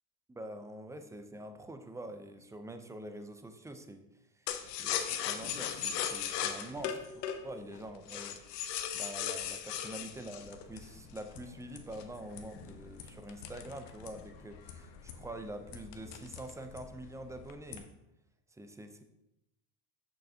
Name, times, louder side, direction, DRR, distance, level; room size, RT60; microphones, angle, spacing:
voice 1, 0.3-4.1 4.8-8.4 8.9-17.9 18.5-19.0, right 1 dB, 5° right, 8 dB, 0.4 m, -46 dB
sound 1, 4.5-11.4 11.9-14.4 14.7-14.8 15.1-15.5 15.9-16.6 16.9-17.5, left 9 dB, 85° left, 0.8 m, -37 dB
sound 2, 10.4-17.8, left 6 dB, 60° left, 1.0 m, -52 dB
6.4 x 6.4 x 2.7 m, 0.89 s
supercardioid pair, 90°, 47 cm